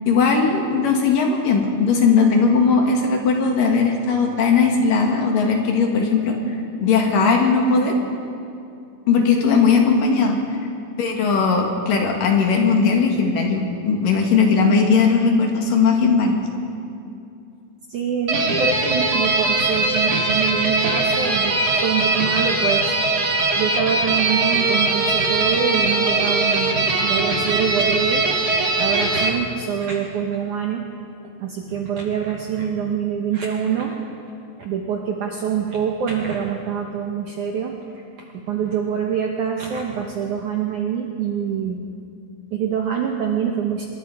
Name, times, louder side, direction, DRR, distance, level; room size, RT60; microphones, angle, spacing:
voice 1, 0.1-6.4 6.8-8.0 9.1-10.4 11.0-16.4, left 5 dB, 60° left, 2 dB, 3.3 m, -18 dB
voice 2, 9.2-9.6 17.9-22.9 23.6-28.2 28.8-30.9 31.4-34.0 34.6-37.7 38.3-41.8 42.5-43.9, right 7 dB, 65° right, 1 dB, 2.1 m, -25 dB
sound 1, 18.3-29.3, right 3 dB, 45° right, 1.2 m, -20 dB
25.0 x 21.5 x 4.9 m, 2.6 s
omnidirectional pair, 4.9 m